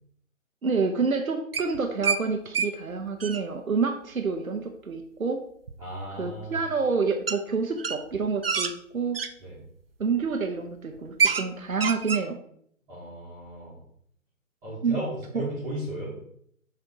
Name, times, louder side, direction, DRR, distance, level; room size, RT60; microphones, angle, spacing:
voice 1, 0.6-5.4 6.2-9.2 10.0-12.4 14.8-15.0 15.3-15.5, right 5 dB, 80° right, 5 dB, 0.9 m, -28 dB
sound 1, 1.5-2.2 2.5-2.7 3.0-3.4 5.7-5.8 7.3-7.4 7.8-9.3 10.0-10.3 10.6-10.7 11.0-11.5 11.7-12.2, right 5 dB, 45° right, 0.4 m, -27 dB
voice 2, 5.8-6.6 9.4-9.6 12.9-13.8 14.6-16.2, equal, 10° right, -11 dB, 1.4 m, -35 dB
6.7 x 3.5 x 4.7 m, 0.67 s
figure-of-eight pair, 140°, 41 cm